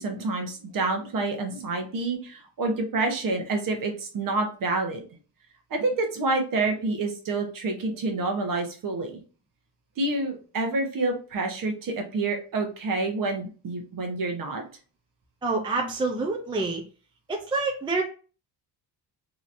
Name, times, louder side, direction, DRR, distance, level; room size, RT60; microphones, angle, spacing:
voice 1, 0.0-5.0 5.7-9.2 10.0-14.7, right 3 dB, 45° right, 4 dB, 1.0 m, -28 dB
voice 2, 15.4-16.8 17.3-18.0, right 3 dB, 10° right, 0 dB, 0.5 m, -27 dB
3.8 x 3.0 x 2.6 m, 0.37 s
cardioid pair, 140°, 44 cm